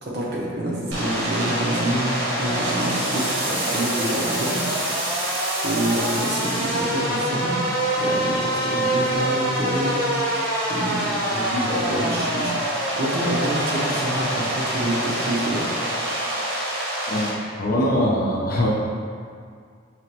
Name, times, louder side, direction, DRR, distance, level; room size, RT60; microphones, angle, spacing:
voice 1, 0.0-4.6 5.0-7.6 8.0-10.0 10.7-15.7 17.8-17.9, right 1 dB, 55° right, -4 dB, 0.8 m, -27 dB
sound 1, 0.9-17.3, right 1 dB, 85° right, 1.0 m, -25 dB
voice 2, 17.6-18.7, left 1 dB, 45° left, -3 dB, 0.6 m, -22 dB
4.9 x 2.9 x 2.9 m, 2.2 s
head